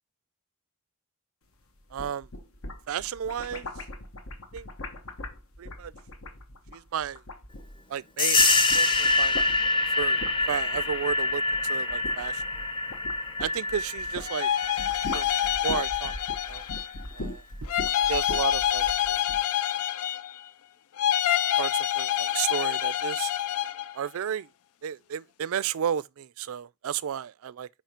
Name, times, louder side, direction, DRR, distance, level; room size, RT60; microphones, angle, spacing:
Wobbly Plastic Disk, 1.8-8.0 8.3-14.3 14.6-19.4, left 1 dB, 75° left, 1.2 m, -40 dB
voice 1, 1.9-2.3 2.9-3.7 4.5-4.7 5.6-5.9 6.7-7.2 7.9-8.4 8.7-9.4 10.0-10.2 10.5-12.4 13.4-14.5 15.1-15.3 15.6-16.1 16.5-16.6 17.1-17.4 18.1-19.2 21.6-23.3 23.9-24.5 24.8-27.7, right 8 dB, 75° right, 0.4 m, -32 dB
sound 1, 8.2-16.5, left 2 dB, 20° left, 0.7 m, -26 dB
sound 2, 14.2-17.0 17.7-20.5 21.0-23.9, left 11 dB, 90° left, 0.4 m, -27 dB
5.8 x 4.8 x 4.3 m
head